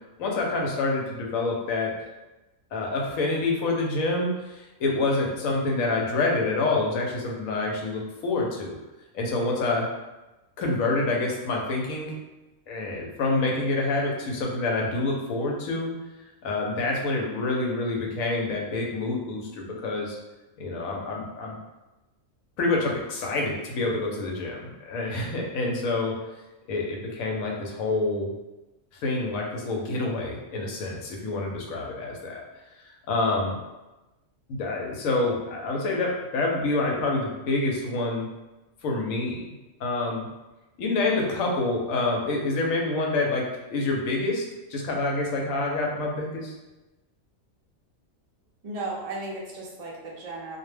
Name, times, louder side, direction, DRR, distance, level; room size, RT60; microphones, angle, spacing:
voice 1, 0.2-1.9 2.7-8.8 9.1-9.9 10.6-12.2 12.7-15.9 16.4-20.2 20.6-21.6 22.6-26.2 26.7-28.3 29.0-32.4 33.1-33.6 34.5-38.3 38.8-39.5 39.8-40.3 40.8-44.4 44.7-46.5, left 2 dB, 85° left, -1 dB, 1.0 m, -27 dB
voice 2, 48.6-50.6, right 2 dB, 55° right, -3 dB, 0.4 m, -35 dB
2.4 x 2.1 x 3.2 m, 1.0 s
omnidirectional pair, 1.4 m